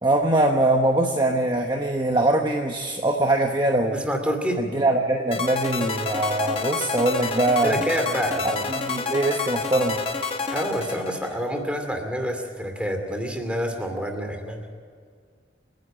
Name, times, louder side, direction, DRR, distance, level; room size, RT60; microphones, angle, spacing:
voice 1, 0.0-4.0 4.6-7.8 8.4-10.0, right 1 dB, 25° right, 2 dB, 1.1 m, -22 dB
voice 2, 3.9-4.6 7.6-8.6 10.5-14.6, equal, 5° right, 4 dB, 2.5 m, -27 dB
sound 1, 5.3-11.6, left 4 dB, 30° left, 1.3 m, -29 dB
28.5 x 10.5 x 8.8 m, 2.1 s
head